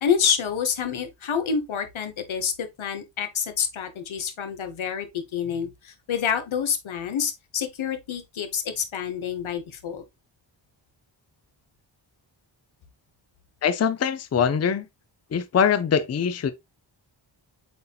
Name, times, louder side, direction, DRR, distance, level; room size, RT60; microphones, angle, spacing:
voice 1, 0.0-10.0, left 7 dB, 85° left, 0.9 m, -28 dB
voice 2, 13.6-14.9 15.3-16.5, left 7 dB, 35° left, 0.4 m, -23 dB
7.8 x 2.8 x 2.3 m
wide cardioid pair, 75°, 47 cm